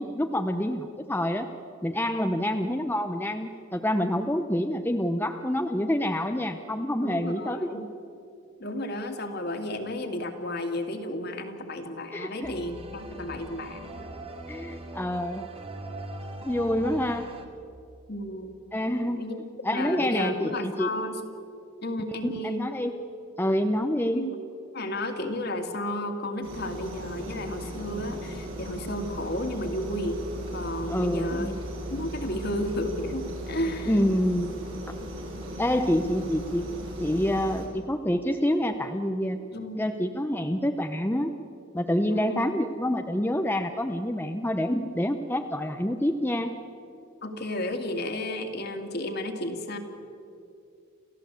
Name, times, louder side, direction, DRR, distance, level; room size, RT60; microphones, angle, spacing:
voice 1, 0.0-1.5 1.8-7.9 12.1-12.5 14.5-15.5 16.4-17.3 18.7-19.2 19.6-20.9 22.2-22.9 23.4-24.3 30.9-31.5 33.9-34.6 34.9-35.0 35.6-36.7 37.0-39.4 39.8-41.3 41.7-46.6, left 1 dB, 10° left, 6 dB, 0.7 m, -27 dB
voice 2, 7.0-7.8 8.6-14.1 18.1-18.6 19.2-19.4 19.7-21.2 21.8-22.6 24.2-24.3 24.7-30.2 30.5-31.5 31.9-33.9 39.5-39.8 42.1-42.5 47.2-49.8, left 1 dB, 50° left, 5 dB, 2.2 m, -32 dB
sound 1, 12.4-17.5, right 1 dB, 30° right, 1.7 m, -40 dB
sound 2, 26.4-37.7, right 1 dB, 75° right, 5.8 m, -37 dB
29.0 x 14.5 x 8.3 m, 2.6 s
head